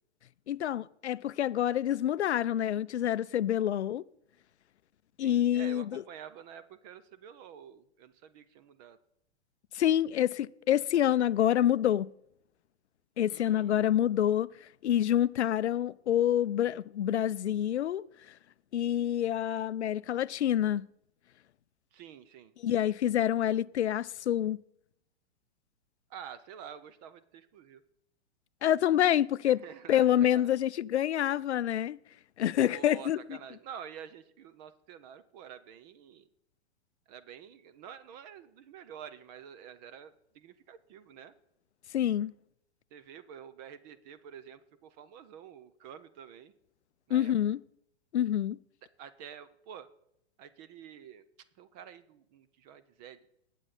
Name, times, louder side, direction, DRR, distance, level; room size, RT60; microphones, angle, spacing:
voice 1, 0.5-4.0 5.2-6.0 9.7-12.1 13.2-14.5 14.8-18.0 18.7-20.9 22.6-24.6 28.6-29.6 29.9-32.0 32.4-33.2 41.9-42.3 47.1-47.6 48.1-48.6, left 11 dB, 80° left, 0.5 m, -27 dB
voice 2, 5.2-9.0 13.3-13.7 21.9-22.5 26.1-27.8 29.4-30.6 32.7-36.3 37.1-41.3 42.9-46.5 47.1-47.3 49.0-49.9 50.4-51.2 51.6-53.2, right 8 dB, 40° right, 0.8 m, -48 dB
20.0 x 8.2 x 4.2 m
hypercardioid pair, 110°, 33 cm